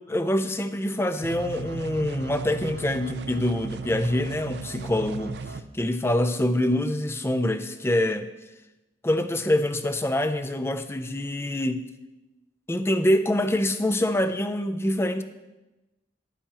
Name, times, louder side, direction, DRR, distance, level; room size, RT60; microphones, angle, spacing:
voice 1, 0.1-5.4 5.7-8.3 9.0-11.9 12.7-15.2, left 1 dB, 15° left, 8 dB, 0.5 m, -25 dB
sound 1, 1.2-5.6, right 4 dB, 60° right, 0.5 m, -36 dB
12.0 x 10.5 x 3.0 m, 1.0 s
head